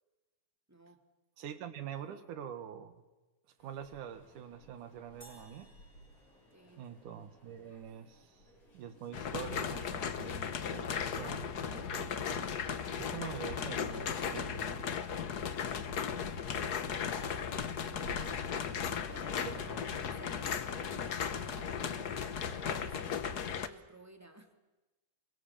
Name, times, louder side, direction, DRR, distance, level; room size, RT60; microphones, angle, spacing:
voice 1, 0.7-1.0 2.1-2.2 6.5-6.9 16.1-17.4 17.8-19.6 20.0-24.5, right 1 dB, 5° right, 5 dB, 1.7 m, -57 dB
voice 2, 1.4-3.0 3.6-5.7 6.8-8.5 8.7-12.5 13.0-15.0 19.5-20.1, right 9 dB, 85° right, 9 dB, 3.1 m, -45 dB
sound 1, 3.6-23.0, equal, 70° left, 7.1 m, -58 dB
sound 2, 5.2-7.6, right 2 dB, 10° left, 3.2 m, -61 dB
sound 3, 9.1-23.7, left 7 dB, 85° left, 0.8 m, -36 dB
28.0 x 23.5 x 7.3 m, 1.1 s
omnidirectional pair, 3.5 m